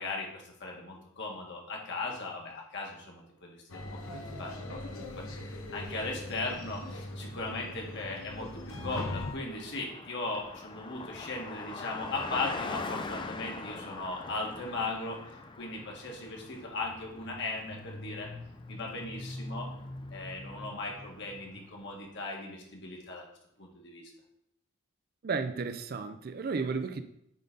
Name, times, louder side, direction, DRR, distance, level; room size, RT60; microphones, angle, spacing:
voice 1, 0.0-15.2 15.6-18.3 18.7-19.7 20.1-23.2 23.6-24.0, left 3 dB, 55° left, 1.7 m, -38 dB
sound 1, 3.7-9.3, left 1 dB, 80° left, 1.1 m, -40 dB
Car passing by, 5.9-22.0, left 3 dB, 25° left, 0.4 m, -44 dB
voice 2, 25.2-27.0, right 4 dB, 45° right, 0.4 m, -33 dB
9.1 x 3.9 x 3.8 m
head